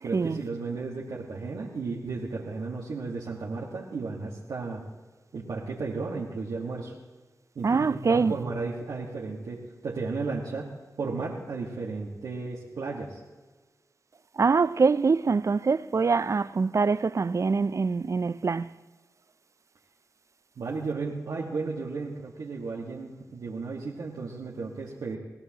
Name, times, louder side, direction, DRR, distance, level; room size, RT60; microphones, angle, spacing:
voice 1, 0.0-4.8 5.3-6.9 7.6-13.2 20.6-25.2, right 4 dB, 85° right, 1.6 m, -34 dB
voice 2, 7.6-8.3 14.4-18.7, right 4 dB, 50° right, 0.4 m, -24 dB
22.5 x 16.0 x 2.9 m
cardioid pair, 40°, 7 cm